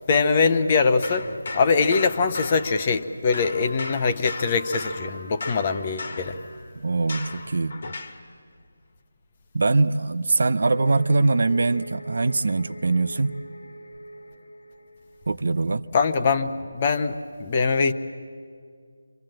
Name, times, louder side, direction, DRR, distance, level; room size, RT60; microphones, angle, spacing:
voice 1, 0.1-1.3 1.5-6.4 15.9-17.9, left 4 dB, 30° left, 8 dB, 1.0 m, -22 dB
sound 1, 1.0-3.1 3.3-8.2, left 3 dB, 50° left, 1.9 m, -37 dB
voice 2, 6.7-7.8 9.5-13.3 15.3-15.9, right 3 dB, 60° right, 14 dB, 0.7 m, -22 dB
sound 2, 10.6-15.6, equal, 70° left, 1.3 m, -42 dB
25.5 x 25.5 x 7.8 m, 2.1 s
figure-of-eight pair, 160°, 0 cm